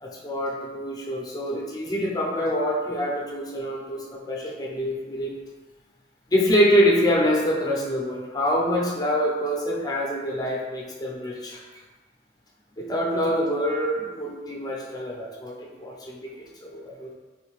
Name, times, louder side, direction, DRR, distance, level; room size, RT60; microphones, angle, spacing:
voice 1, 0.0-5.3 6.3-11.6 12.8-17.1, equal, 20° left, -2 dB, 0.5 m, -25 dB
3.6 x 2.6 x 3.0 m, 1.3 s
head